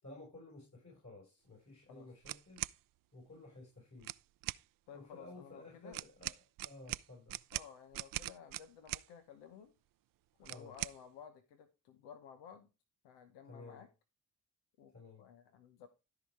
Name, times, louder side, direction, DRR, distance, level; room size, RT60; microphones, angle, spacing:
voice 1, 0.0-2.6 3.1-4.1 4.9-6.3 6.6-7.4 10.4-10.8 13.5-13.8 14.9-15.2, left 2 dB, 40° left, -1 dB, 5.4 m, -54 dB
sound 1, 2.2-2.8 4.0-4.6 5.9-9.1 10.4-11.0, right 16 dB, 55° right, 0.5 m, -41 dB
voice 2, 4.9-6.0 7.5-9.7 10.4-12.7 13.0-13.9 14.8-14.9 15.2-15.9, left 8 dB, 80° left, 8 dB, 1.0 m, -55 dB
13.0 x 5.0 x 4.7 m, 0.29 s
hypercardioid pair, 40°, 41 cm